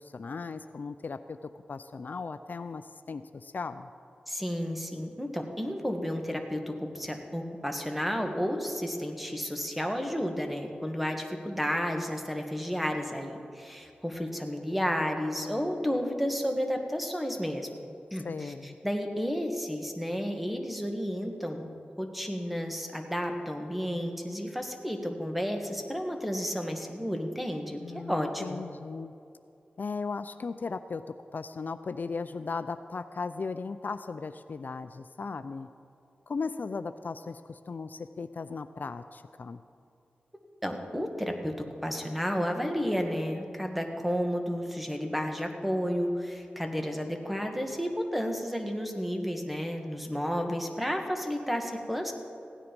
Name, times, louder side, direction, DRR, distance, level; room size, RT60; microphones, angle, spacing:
voice 1, 0.0-1.4 1.7-3.9 18.2-18.8 27.8-29.1 29.8-31.0 31.3-35.7 36.3-39.6, left 4 dB, 60° left, 10 dB, 0.4 m, -37 dB
voice 2, 4.3-17.7 18.1-21.7 22.0-28.6 40.6-52.1, equal, 5° right, 4 dB, 1.6 m, -32 dB
16.0 x 9.9 x 5.3 m, 2.6 s
cardioid pair, 55°, 3 cm